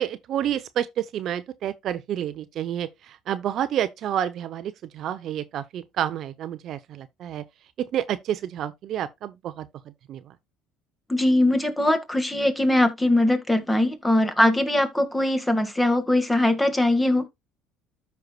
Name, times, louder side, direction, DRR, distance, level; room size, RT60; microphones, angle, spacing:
voice 1, 0.0-7.4 7.8-9.7 10.1-10.3, right 10 dB, 55° right, 0.7 m, -29 dB
voice 2, 11.1-17.3, left 1 dB, 10° left, 1.8 m, -21 dB
13.5 x 4.6 x 2.3 m
supercardioid pair, 80°, 0 cm